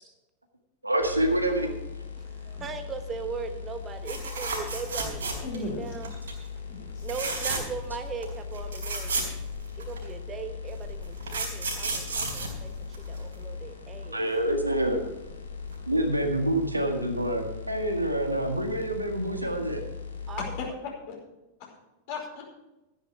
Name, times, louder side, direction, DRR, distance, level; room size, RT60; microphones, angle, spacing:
voice 1, 0.8-1.7 14.0-15.0 15.9-19.8, right 1 dB, 85° right, 4 dB, 1.8 m, -27 dB
sound 1, 1.0-20.7, left 5 dB, 75° left, 2.2 m, -39 dB
voice 2, 2.2-6.1 7.0-9.3 9.8-14.2 20.3-20.5, right 5 dB, 25° right, 9 dB, 1.1 m, -39 dB
sound 2, 4.0-5.7 6.0-6.4 7.0-7.9 8.2-8.3 8.5-10.0 10.8-13.3 15.3-15.4 15.7-15.8, right 4 dB, 65° right, 3.8 m, -32 dB
voice 3, 5.4-5.9 6.7-7.1 7.4-7.5 20.6-20.7 21.1-21.2 21.6-21.7 22.1-22.4, left 3 dB, 50° left, -1 dB, 4.9 m, -36 dB
13.5 x 10.5 x 5.0 m, 0.98 s
figure-of-eight pair, 90°, 0 cm